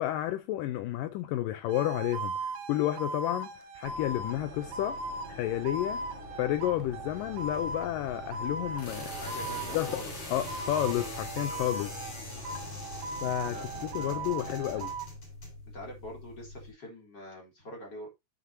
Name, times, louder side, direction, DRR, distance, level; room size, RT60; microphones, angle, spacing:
voice 1, 0.0-5.0 5.3-6.0 6.4-9.1 9.7-10.0 10.3-12.0 13.2-14.9, left 14 dB, 80° left, 2.0 m, -31 dB
sound 1, 1.7-10.0 10.5-12.2 12.5-15.1, right 3 dB, 75° right, 2.6 m, -38 dB
sound 2, 3.8-14.9, equal, 25° right, 0.5 m, -47 dB
sound 3, 6.6-16.7, left 2 dB, 45° left, 6.2 m, -43 dB
voice 2, 9.1-10.5 13.4-14.9 15.7-18.1, left 1 dB, 30° left, 3.7 m, -45 dB
14.5 x 6.0 x 2.8 m
omnidirectional pair, 4.5 m